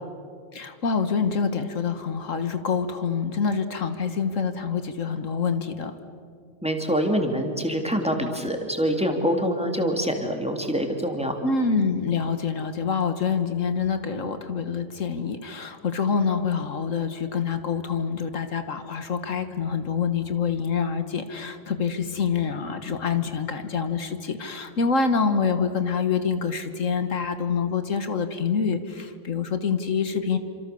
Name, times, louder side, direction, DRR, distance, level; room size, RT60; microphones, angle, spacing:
voice 1, 0.5-6.0 11.4-30.4, left 5 dB, 75° left, 9 dB, 1.7 m, -26 dB
voice 2, 6.6-11.4, equal, 5° right, 3 dB, 2.8 m, -25 dB
28.5 x 26.5 x 7.0 m, 2.3 s
omnidirectional pair, 1.4 m